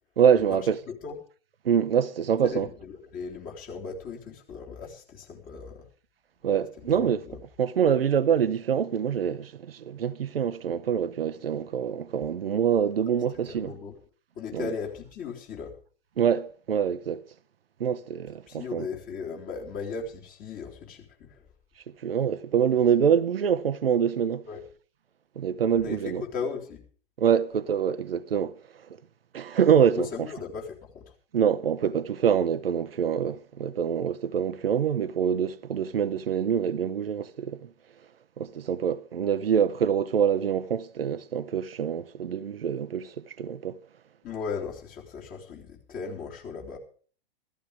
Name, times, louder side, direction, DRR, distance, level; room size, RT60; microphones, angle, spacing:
voice 1, 0.2-0.8 1.6-2.7 6.4-7.2 7.6-13.7 14.5-14.7 16.2-17.2 17.8-18.9 22.0-24.4 25.4-26.2 27.2-28.6 29.3-30.1 31.3-37.7 38.4-43.8, right 8 dB, 70° right, 0.9 m, -25 dB
voice 2, 0.9-1.2 2.4-5.9 6.8-7.4 13.5-13.9 14.4-15.7 18.5-21.4 24.4-24.6 25.8-26.9 29.9-31.1 44.2-46.8, left 5 dB, 30° left, 3.7 m, -37 dB
15.5 x 14.0 x 5.0 m
figure-of-eight pair, 105°, 30 cm